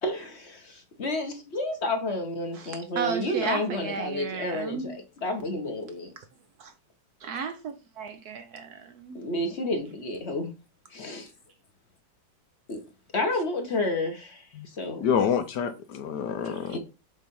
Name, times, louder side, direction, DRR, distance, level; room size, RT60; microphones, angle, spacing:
voice 1, 0.0-6.1 9.1-10.6 10.9-11.3 12.7-12.8 13.1-15.1 16.4-16.8, left 2 dB, 40° left, 1.3 m, -31 dB
voice 2, 2.5-4.9 6.6-6.7 7.2-9.2 16.7-16.8, right 6 dB, 65° right, 1.1 m, -34 dB
voice 3, 15.0-16.8, left 7 dB, 70° left, 1.1 m, -27 dB
7.4 x 2.8 x 5.3 m
omnidirectional pair, 2.1 m